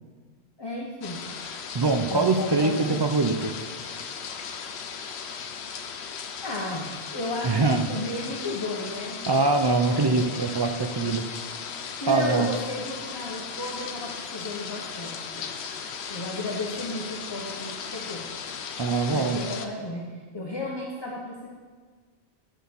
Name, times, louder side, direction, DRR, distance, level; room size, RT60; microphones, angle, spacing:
voice 1, 0.6-1.3 2.1-3.0 6.4-9.2 9.9-10.3 12.0-15.5 16.1-18.3 19.1-21.5, left 2 dB, 25° left, -2 dB, 0.8 m, -33 dB
sound 1, 1.0-19.7, left 6 dB, 85° left, 0.9 m, -37 dB
voice 2, 1.7-3.5 7.4-7.8 9.3-11.2 12.1-12.5 18.8-19.4, right 3 dB, 40° right, 6 dB, 0.3 m, -23 dB
10.0 x 4.0 x 6.9 m, 1.5 s
omnidirectional pair, 1.1 m